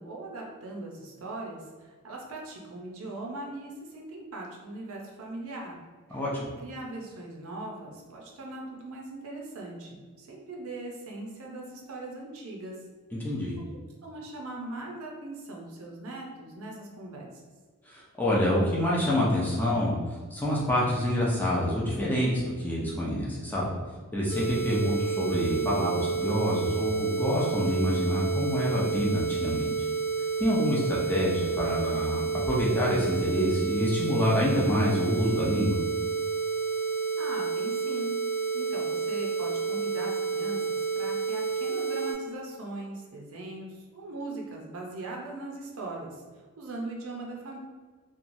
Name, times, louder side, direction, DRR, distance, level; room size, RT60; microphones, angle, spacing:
voice 1, 0.0-5.8 6.1-6.2 6.6-12.8 14.0-17.3 37.2-38.1 38.5-46.2 46.6-47.6, right 2 dB, 65° right, -1 dB, 0.6 m, -40 dB
voice 2, 6.1-6.5 13.2-13.6 17.9-20.0 20.3-23.7 24.1-29.7 30.4-35.8, equal, 10° left, -6 dB, 0.4 m, -27 dB
sound 1, 24.3-42.1, right 5 dB, 85° left, 0.8 m, -30 dB
2.9 x 2.3 x 2.6 m, 1.4 s
head